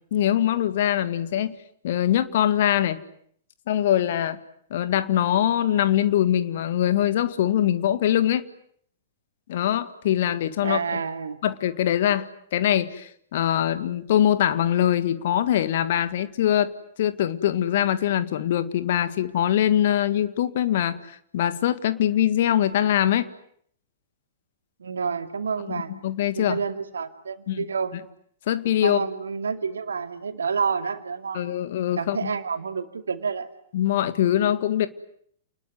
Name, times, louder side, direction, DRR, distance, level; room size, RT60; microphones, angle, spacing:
voice 1, 0.1-1.6 1.8-3.0 3.7-4.4 4.7-8.4 9.5-10.8 11.4-16.7 17.0-23.3 25.7-26.6 27.5-27.6 28.5-29.0 31.3-32.3 33.7-34.9, left 11 dB, 50° left, 13 dB, 1.8 m, -23 dB
voice 2, 10.6-11.4 24.8-25.9 26.4-27.9 28.8-31.4 32.0-33.5, right 5 dB, 70° right, 9 dB, 2.4 m, -29 dB
29.5 x 20.5 x 9.6 m, 0.67 s
figure-of-eight pair, 105°, 0 cm